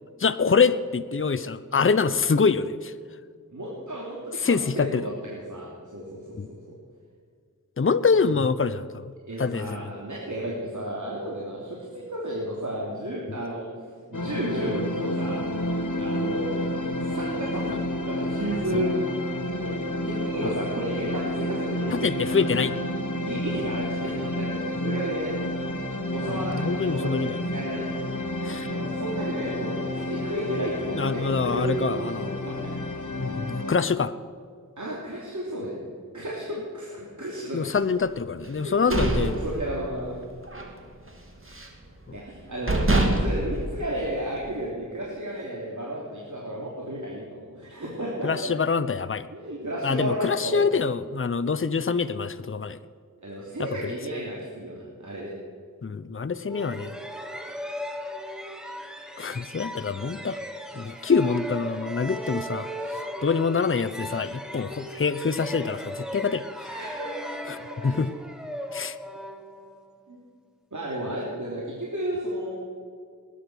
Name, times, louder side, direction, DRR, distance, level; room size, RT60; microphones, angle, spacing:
voice 1, 0.2-2.9 4.4-5.0 6.4-6.5 7.8-9.0 9.4-9.9 21.9-22.7 26.6-27.3 28.4-28.7 30.9-32.3 33.2-34.1 37.5-39.3 48.2-49.2 49.8-52.8 55.8-57.0 59.2-60.4 60.8-66.4 67.5-67.6 67.8-68.1 68.7-68.9, left 5 dB, 40° left, 13 dB, 0.7 m, -25 dB
voice 2, 3.5-6.6 9.3-13.7 14.1-15.4 16.0-16.5 17.0-18.9 19.6-22.5 23.1-25.3 26.1-32.7 34.8-35.8 36.1-37.8 38.6-40.2 42.1-48.5 49.3-50.7 53.2-55.3 66.7-67.3 70.1-70.2 70.7-72.6, right 1 dB, 60° right, -5 dB, 3.2 m, -33 dB
sound 1, 14.1-33.7, left 1 dB, 65° left, 1.6 m, -30 dB
sound 2, 38.6-40.1 40.5-40.7 41.1-41.8 42.3-42.4 42.7-44.5, right 2 dB, 40° right, 2.6 m, -25 dB
sound 3, 56.5-70.0, equal, ahead, 2.0 m, -37 dB
19.5 x 10.0 x 6.2 m, 2.1 s
wide cardioid pair, 40°, 34 cm